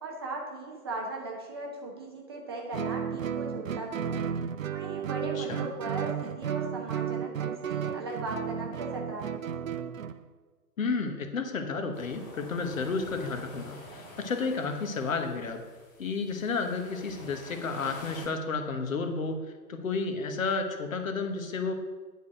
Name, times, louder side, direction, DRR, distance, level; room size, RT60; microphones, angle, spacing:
voice 1, 0.0-4.2 4.7-9.4, right 2 dB, 15° right, -1 dB, 0.7 m, -38 dB
Guitar, 2.7-10.2, right 8 dB, 55° right, 0.5 m, -33 dB
voice 2, 5.4-5.7 10.8-15.6 16.0-19.4 19.7-21.7, left 4 dB, 55° left, 6 dB, 1.3 m, -31 dB
sound 1, 11.9-18.3, left 1 dB, 25° left, 2.4 m, -48 dB
9.9 x 4.6 x 6.4 m, 1.4 s
figure-of-eight pair, 130°, 49 cm